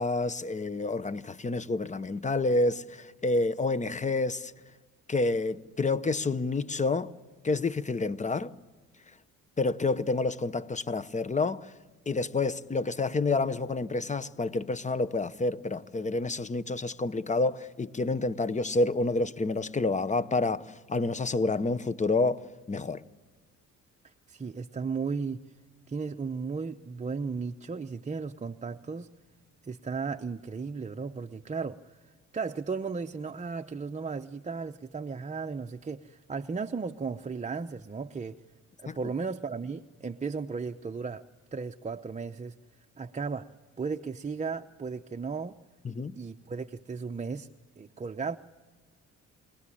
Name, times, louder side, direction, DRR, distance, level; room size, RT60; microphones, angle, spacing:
voice 1, 0.0-4.5 5.1-7.1 7.4-8.5 9.6-11.7 12.1-23.0 38.9-39.0 45.8-46.1, left 3 dB, 25° left, 0.8 m, -29 dB
voice 2, 24.0-25.4 25.9-29.1 29.6-31.8 32.3-38.4 38.8-41.2 41.5-42.6 43.0-43.5 43.8-45.6 46.2-47.5 47.8-48.4, right 5 dB, 25° right, 0.7 m, -35 dB
29.0 x 19.0 x 10.0 m
cardioid pair, 90°, 30 cm